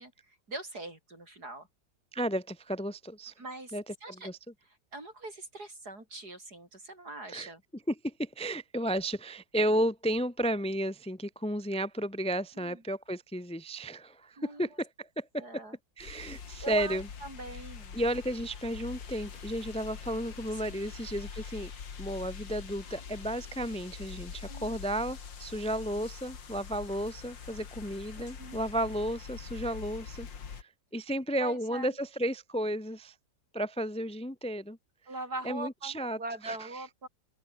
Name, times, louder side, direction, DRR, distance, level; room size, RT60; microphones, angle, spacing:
voice 1, 0.0-1.7 3.4-4.3 4.9-7.6 12.6-12.8 14.4-14.7 15.4-15.8 16.6-18.0 20.5-20.9 24.5-24.8 28.1-28.6 31.4-31.9 35.1-37.1, right 2 dB, 60° right, 7.4 m, -42 dB
voice 2, 2.1-3.3 3.7-4.4 7.3-7.5 7.9-15.6 16.0-17.1 17.9-21.7 22.0-30.3 30.6-33.1 33.5-34.8 35.4-36.2 36.4-36.7, right 1 dB, 5° left, 1.2 m, -33 dB
sound 1, 16.0-30.6, left 6 dB, 90° left, 2.8 m, -44 dB
open air
omnidirectional pair, 1.9 m